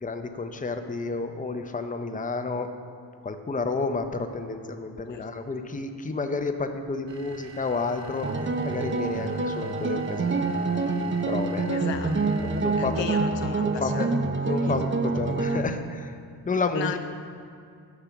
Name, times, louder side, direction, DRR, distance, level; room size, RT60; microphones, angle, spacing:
voice 1, 0.0-2.7 3.2-10.5 11.3-11.9 12.6-13.1 13.6-14.1 14.4-16.1 16.5-17.0, left 3 dB, 20° left, 7 dB, 0.6 m, -30 dB
sound 1, 7.1-13.3, right 3 dB, 75° right, 1.0 m, -47 dB
sound 2, 8.2-15.6, right 3 dB, 25° right, 0.6 m, -27 dB
voice 2, 11.6-12.2 12.8-14.1 14.7-14.8 16.7-17.0, left 6 dB, 75° left, 8 dB, 0.7 m, -34 dB
8.6 x 5.9 x 7.0 m, 2.4 s
cardioid pair, 65°, 44 cm